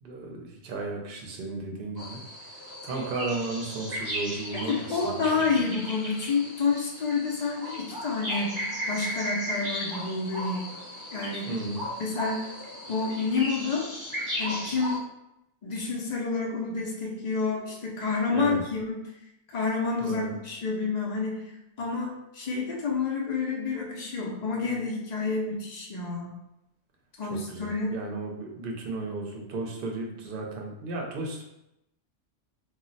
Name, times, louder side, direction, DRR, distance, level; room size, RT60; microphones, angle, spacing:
voice 1, 0.0-2.2 2.8-5.6 11.5-11.9 18.3-18.7 20.0-20.3 27.3-31.4, right 3 dB, 60° right, 1 dB, 0.7 m, -34 dB
sound 1, 2.0-15.0, equal, 25° right, 0.6 m, -36 dB
voice 2, 4.7-10.6 11.1-11.5 12.0-12.4 12.9-13.9 14.4-15.0 15.6-19.0 19.5-21.4 21.8-26.3 27.2-28.0, left 4 dB, 55° left, -1 dB, 0.4 m, -29 dB
2.3 x 2.0 x 3.8 m, 0.86 s
omnidirectional pair, 1.2 m